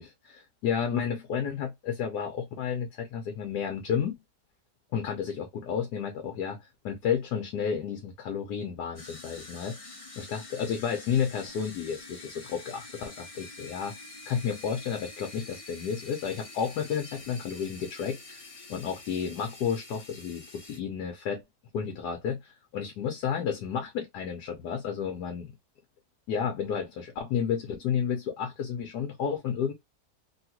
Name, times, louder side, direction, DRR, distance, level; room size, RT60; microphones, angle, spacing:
voice 1, 0.0-4.1 4.9-9.8 10.2-13.9 14.3-18.4 18.7-21.4 21.7-25.5 26.3-29.7, left 7 dB, 80° left, 1.3 m, -31 dB
sound 1, 8.9-20.8, left 2 dB, 35° left, 0.5 m, -47 dB
3.4 x 2.4 x 2.8 m
omnidirectional pair, 1.7 m